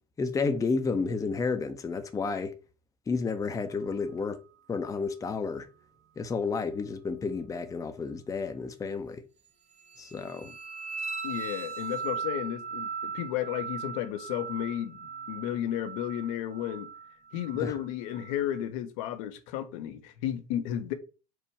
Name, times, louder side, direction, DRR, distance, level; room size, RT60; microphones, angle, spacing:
voice 1, 0.2-2.5 3.1-4.4 4.7-5.7 6.2-9.2 10.0-10.5 17.6-17.7, left 4 dB, 15° left, 0.6 m, -31 dB
sound 1, 9.8-18.6, right 5 dB, 40° right, 1.0 m, -39 dB
voice 2, 11.2-15.0 15.3-16.9 17.3-20.9, left 11 dB, 60° left, 0.7 m, -33 dB
4.6 x 2.5 x 4.3 m
hypercardioid pair, 75°, 19 cm